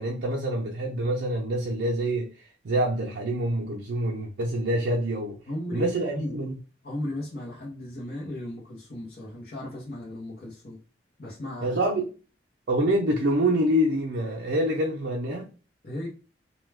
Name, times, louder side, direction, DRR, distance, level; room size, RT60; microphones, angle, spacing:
voice 1, 0.0-2.3 2.6-5.4 5.7-6.6 11.6-12.1 12.7-15.5, right 1 dB, 70° right, 0.5 m, -26 dB
voice 2, 5.5-6.4 6.8-10.8 11.2-11.7 15.8-16.1, left 1 dB, 55° left, 0.8 m, -35 dB
2.2 x 2.2 x 3.2 m
head